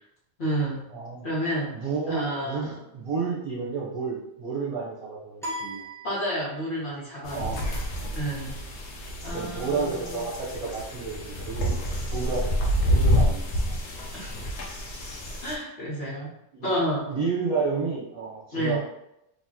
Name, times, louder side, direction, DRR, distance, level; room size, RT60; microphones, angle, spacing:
voice 1, 0.4-0.8 1.2-1.8 2.1-2.8 6.0-7.8 8.1-8.6 9.2-10.2 14.1-14.4 15.4-16.3 16.6-17.0 18.5-18.8, equal, 70° left, -7 dB, 1.4 m, -30 dB
voice 2, 0.9-1.3 1.7-5.8 7.3-7.6 9.3-11.7 12.1-12.5 12.8-13.4 16.5-16.7 17.1-18.8, right 4 dB, 40° right, -6 dB, 0.8 m, -31 dB
sound 1, 5.4-6.9, equal, 5° left, 0.7 m, -37 dB
sound 2, 7.3-15.5, equal, 90° left, 1.0 m, -28 dB
2.9 x 2.7 x 3.7 m, 0.83 s
omnidirectional pair, 1.1 m